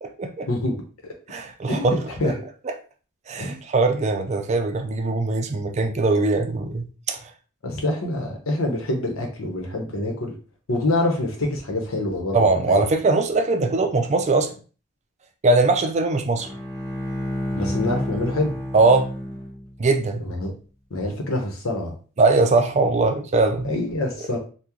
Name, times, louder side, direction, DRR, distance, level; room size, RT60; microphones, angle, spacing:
voice 1, 0.0-0.5 1.3-2.0 2.2-2.3 2.7-2.8 3.3-7.3 12.3-14.5 15.4-16.5 18.7-19.1 19.8-20.2 22.2-23.7, right 3 dB, 35° right, 6 dB, 0.4 m, -21 dB
voice 2, 1.7-2.3 3.4-3.6 7.6-10.3 10.7-12.8 17.5-18.5 20.2-20.5 20.9-21.9 23.6-24.4, left 1 dB, 85° left, 2 dB, 0.9 m, -26 dB
Bowed string instrument, 16.3-19.9, left 1 dB, 15° left, 1.2 m, -30 dB
3.0 x 2.2 x 3.7 m, 0.37 s
head